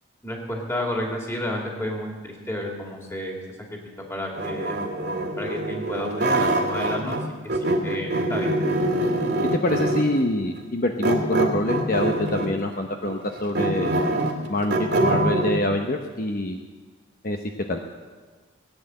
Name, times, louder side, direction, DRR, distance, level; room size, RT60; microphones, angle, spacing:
voice 1, 0.2-3.4 3.7-3.8 4.1-4.8 5.4-7.2 7.5-8.6, left 1 dB, 15° left, 0 dB, 2.6 m, -31 dB
sound 1, 4.3-7.2 7.5-10.2 11.0-12.6 13.0-15.5, right 1 dB, 55° right, 2.1 m, -24 dB
voice 2, 9.6-14.0 14.5-16.6 17.2-17.4 17.7-17.8, left 1 dB, 45° left, 4 dB, 0.9 m, -25 dB
18.0 x 9.6 x 7.8 m, 1.4 s
head